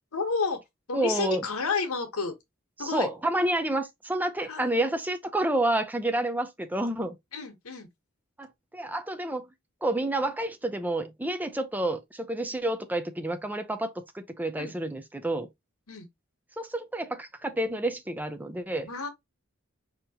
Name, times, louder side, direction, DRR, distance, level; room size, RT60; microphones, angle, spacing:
voice 1, 0.1-0.6 0.9-2.3 2.8-3.1 4.4-4.7 7.3-7.9 14.6-14.7 15.9-16.1 18.9-19.1, left 4 dB, 80° left, 1.2 m, -30 dB
voice 2, 0.9-1.4 2.8-7.2 8.4-8.5 8.7-9.5 9.8-15.5 16.6-18.9, right 1 dB, 10° right, 0.5 m, -29 dB
5.0 x 2.9 x 2.9 m
head